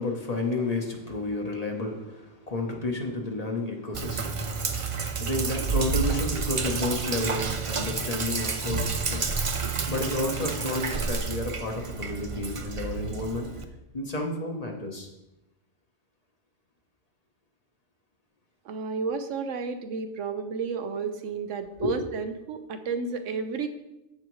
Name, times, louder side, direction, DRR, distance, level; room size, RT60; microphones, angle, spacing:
voice 1, 0.0-9.2 9.9-13.5 13.9-15.1 21.8-21.9, left 2 dB, 35° left, 2 dB, 1.0 m, -31 dB
Sink (filling or washing), 3.9-13.6, right 5 dB, 40° right, 0.5 m, -30 dB
voice 2, 18.7-23.7, right 5 dB, 85° right, 9 dB, 1.1 m, -32 dB
14.5 x 4.8 x 3.1 m, 0.93 s
omnidirectional pair, 1.3 m